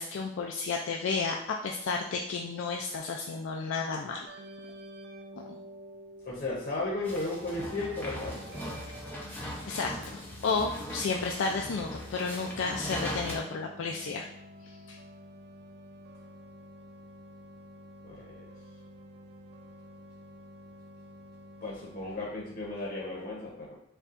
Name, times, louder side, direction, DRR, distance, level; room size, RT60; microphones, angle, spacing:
voice 1, 0.0-4.3 5.5-5.6 9.6-14.3 14.9-15.0, left 4 dB, 65° left, 1 dB, 0.3 m, -32 dB
sound 1, 4.2-22.2, equal, 50° right, 0.4 m, -49 dB
voice 2, 6.2-8.6 18.0-18.5 21.6-23.8, left 2 dB, 45° left, -4 dB, 0.8 m, -35 dB
sound 2, 7.0-13.4, equal, 10° left, 0.6 m, -40 dB
6.6 x 2.3 x 2.5 m, 0.75 s
head